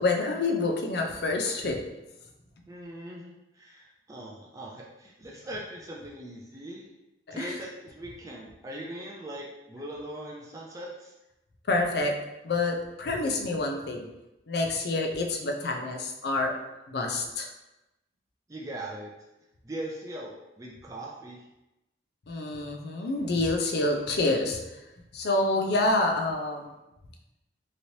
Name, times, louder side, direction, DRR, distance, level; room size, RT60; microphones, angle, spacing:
voice 1, 0.0-1.8 7.4-7.5 11.7-12.1 12.4-14.0 14.5-16.5 16.9-17.5 22.3-24.6 25.1-26.6, left 2 dB, 60° left, 3 dB, 0.5 m, -27 dB
voice 2, 2.7-6.9 7.3-11.1 18.5-19.1 19.6-21.4, right 1 dB, 20° right, -3 dB, 0.3 m, -40 dB
3.1 x 2.8 x 2.7 m, 0.95 s
head